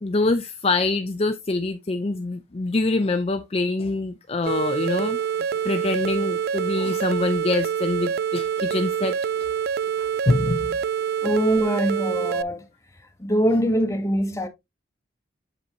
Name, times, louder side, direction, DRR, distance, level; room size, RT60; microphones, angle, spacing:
voice 1, 0.0-5.2 5.6-9.2 10.0-10.8, left 2 dB, 30° left, 0.5 m, -25 dB
sound 1, 4.5-12.4, right 8 dB, 55° right, 0.3 m, -26 dB
voice 2, 11.2-12.7 13.2-14.5, equal, 15° left, 1.3 m, -23 dB
8.3 x 5.3 x 3.0 m
head